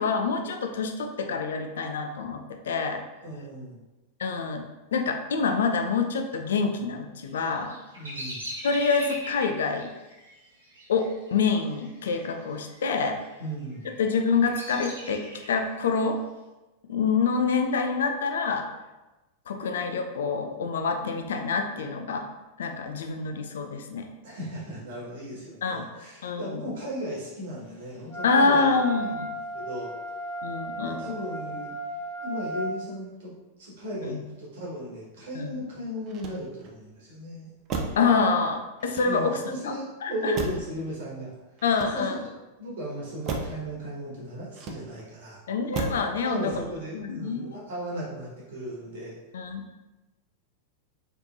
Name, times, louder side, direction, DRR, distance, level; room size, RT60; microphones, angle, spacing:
voice 1, 0.0-3.0 4.2-4.6 4.9-7.7 8.6-9.9 10.9-13.2 14.0-15.2 15.5-16.2 16.9-18.7 19.5-22.3 22.6-24.1 25.6-25.8 26.2-26.7 28.2-29.3 30.4-31.1 34.0-34.2 35.3-35.6 38.0-39.4 39.6-39.7 40.0-40.3 41.6-42.2 45.5-46.7 46.9-47.6 49.3-49.8, left 5 dB, 65° left, 5 dB, 0.4 m, -26 dB
voice 2, 3.2-3.8 7.9-8.4 13.4-13.9 24.2-28.7 29.5-29.9 30.8-31.7 32.2-33.3 33.6-37.5 39.1-41.3 41.9-42.3 42.6-45.4 46.2-49.2, equal, 55° right, -5 dB, 1.3 m, -36 dB
Bird vocalization bird call bird song, 7.3-12.3 12.6-13.2 13.7-15.7, equal, 75° right, 1.1 m, -41 dB
Wind instrument woodwind instrument, 28.1-32.7, right 2 dB, 25° left, 1.4 m, -34 dB
Motor vehicle (road), 36.0-36.8 37.7-38.1 38.8-39.5 40.3-40.8 41.6-42.3 43.2-43.6 44.5-45.1 45.7-46.1 46.5-46.9, right 4 dB, 35° right, 0.5 m, -34 dB
3.2 x 3.2 x 2.6 m, 1.1 s
figure-of-eight pair, 90°, 0 cm